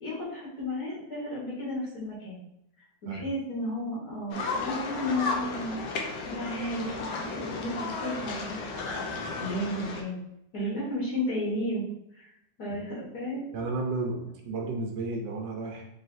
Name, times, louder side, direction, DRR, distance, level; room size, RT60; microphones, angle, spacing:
voice 1, 0.0-2.4 3.0-5.8 6.3-9.1 9.4-10.2 10.5-11.8 12.1-12.3 12.6-13.5, left 1 dB, 65° left, -6 dB, 1.7 m, -33 dB
sound 1, 4.3-10.0, left 3 dB, 80° left, 1.3 m, -34 dB
voice 2, 13.5-15.8, right 3 dB, 85° right, 1 dB, 1.3 m, -33 dB
4.6 x 3.1 x 2.6 m, 0.79 s
omnidirectional pair, 1.9 m